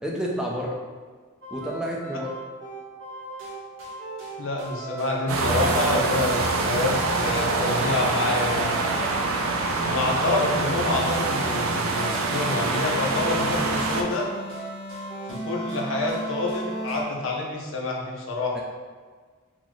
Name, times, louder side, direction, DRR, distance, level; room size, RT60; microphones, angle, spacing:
voice 1, 0.0-0.7 1.5-2.3 18.5-18.6, equal, 5° right, -3 dB, 0.4 m, -29 dB
sound 1, 1.4-17.0, right 2 dB, 70° right, 0.8 m, -35 dB
voice 2, 4.4-8.9 9.8-14.3 15.3-18.6, left 2 dB, 65° left, -1 dB, 0.5 m, -27 dB
sound 2, 5.3-14.0, right 3 dB, 85° right, 0.4 m, -25 dB
3.7 x 2.0 x 3.0 m, 1.5 s
head